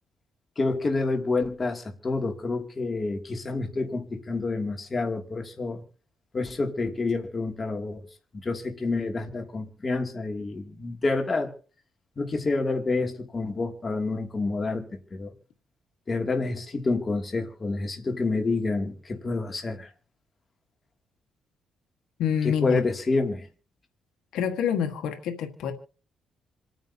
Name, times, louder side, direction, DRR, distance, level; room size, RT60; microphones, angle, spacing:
voice 1, 0.6-5.8 6.3-8.0 8.4-11.5 12.2-15.3 16.1-19.9 22.4-23.5, left 3 dB, 30° left, 3 dB, 2.7 m, -28 dB
voice 2, 22.2-22.8 24.3-25.7, left 7 dB, 85° left, 5 dB, 1.7 m, -26 dB
27.0 x 9.1 x 2.9 m, 0.41 s
cardioid pair, 90°, 0 cm